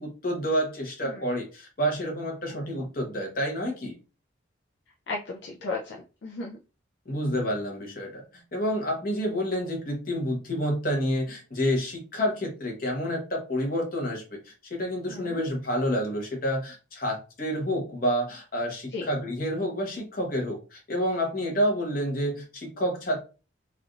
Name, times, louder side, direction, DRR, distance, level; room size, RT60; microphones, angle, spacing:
voice 1, 0.0-4.0 7.1-23.2, equal, 45° left, 1 dB, 1.0 m, -29 dB
voice 2, 5.1-6.6 15.1-15.5 18.9-19.1, left 3 dB, 65° left, -1 dB, 0.4 m, -35 dB
3.3 x 2.4 x 2.4 m, 0.34 s
head